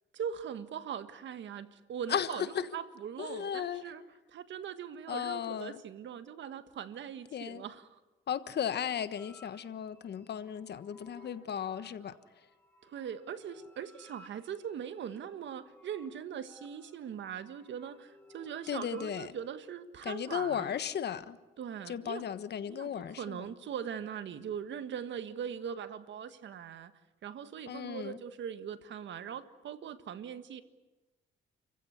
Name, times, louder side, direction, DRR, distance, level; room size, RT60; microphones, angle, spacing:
voice 1, 0.1-4.0 4.3-8.0 12.8-20.7 21.6-22.2 22.7-26.9 27.2-30.6, right 8 dB, 65° right, 1.6 m, -41 dB
voice 2, 2.1-2.7 3.2-3.8 5.1-5.8 7.3-7.6 8.3-12.1 18.7-19.3 20.0-21.4 21.9-23.5 27.7-28.2, left 8 dB, 55° left, 1.4 m, -35 dB
sound 1, 9.2-19.5, left 2 dB, 10° left, 7.2 m, -59 dB
30.0 x 15.5 x 9.7 m
cardioid pair, 90°, 20 cm